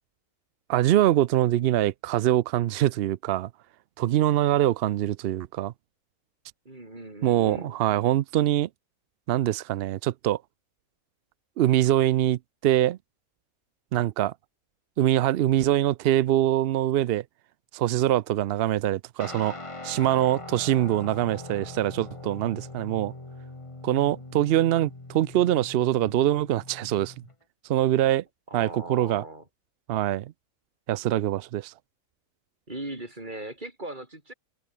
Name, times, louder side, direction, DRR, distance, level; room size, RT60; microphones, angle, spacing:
voice 1, 0.7-3.5 4.0-5.7 7.2-8.7 9.3-10.4 11.6-13.0 13.9-14.3 15.0-17.2 17.7-19.5 19.8-23.1 23.8-27.1 27.7-28.2 28.5-29.2 29.9-30.3 30.9-31.7, right 13 dB, 75° right, 0.5 m, -24 dB
voice 2, 6.6-7.8 28.5-29.4 32.7-34.3, right 1 dB, 30° right, 4.8 m, -38 dB
Guitar, 19.2-27.3, left 2 dB, 20° left, 2.0 m, -42 dB
open air
omnidirectional pair, 1.5 m